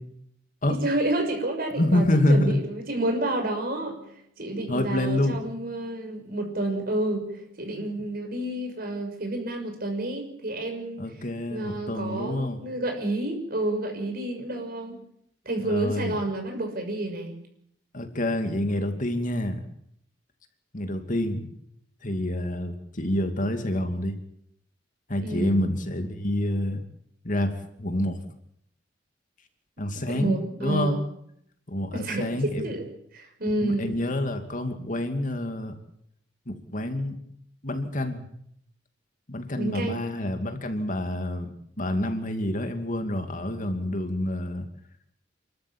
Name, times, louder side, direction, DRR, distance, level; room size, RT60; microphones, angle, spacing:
voice 1, 0.7-4.0 4.4-11.0 11.5-15.0 15.4-17.4 25.2-25.5 29.9-31.0 31.9-32.8 33.1-33.9 39.5-40.0, right 1 dB, 55° right, 4 dB, 6.4 m, -30 dB
voice 2, 1.7-2.6 4.7-5.4 11.0-12.6 15.6-16.1 17.9-19.7 20.7-21.5 22.0-24.2 25.1-26.8 27.2-28.2 29.8-31.0 31.7-32.7 33.6-35.7 36.5-37.2 37.6-38.3 39.3-44.7, left 1 dB, 45° left, 6 dB, 2.6 m, -27 dB
28.5 x 13.0 x 8.9 m, 0.73 s
head